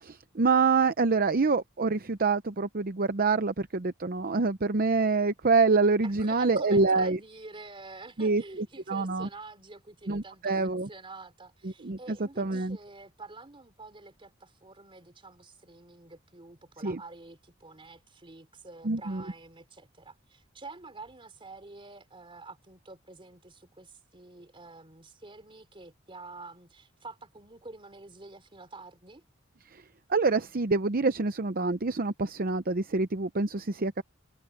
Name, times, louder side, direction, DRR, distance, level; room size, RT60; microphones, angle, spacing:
voice 1, 0.0-7.2 8.2-9.3 10.1-10.9 11.6-12.8 16.8-17.0 18.8-19.2 29.7-29.8 30.1-34.0, right 4 dB, 45° right, 0.7 m, -26 dB
voice 2, 6.0-29.2, right 3 dB, 25° right, 3.6 m, -48 dB
head